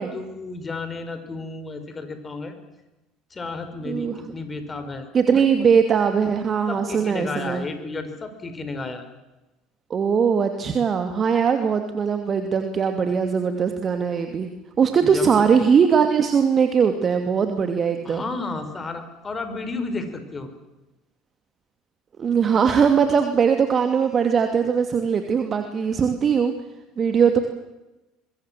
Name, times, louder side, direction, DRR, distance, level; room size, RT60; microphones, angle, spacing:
voice 1, 0.0-2.6 3.3-5.7 6.7-9.0 15.0-15.4 18.0-20.5, left 3 dB, 25° left, 9 dB, 5.4 m, -32 dB
voice 2, 3.8-4.2 5.1-7.6 9.9-14.5 14.8-18.3 22.2-26.5 27.0-27.4, right 6 dB, 35° right, 6 dB, 2.6 m, -20 dB
24.0 x 22.5 x 7.6 m, 1.0 s
hypercardioid pair, 65°, 0 cm